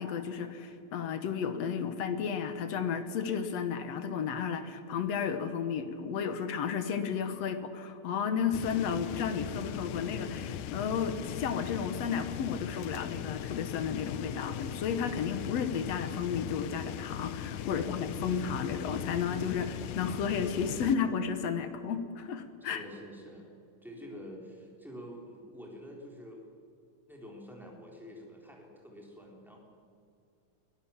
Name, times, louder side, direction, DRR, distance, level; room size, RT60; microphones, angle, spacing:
voice 1, 0.0-22.8, left 7 dB, 60° left, 9 dB, 2.0 m, -33 dB
sound 1, 8.5-21.0, left 10 dB, 80° left, 2.2 m, -39 dB
voice 2, 17.7-18.5 22.6-23.5 23.8-26.4 27.1-29.6, equal, ahead, -1 dB, 3.6 m, -47 dB
22.0 x 17.5 x 7.3 m, 2.4 s
omnidirectional pair, 3.7 m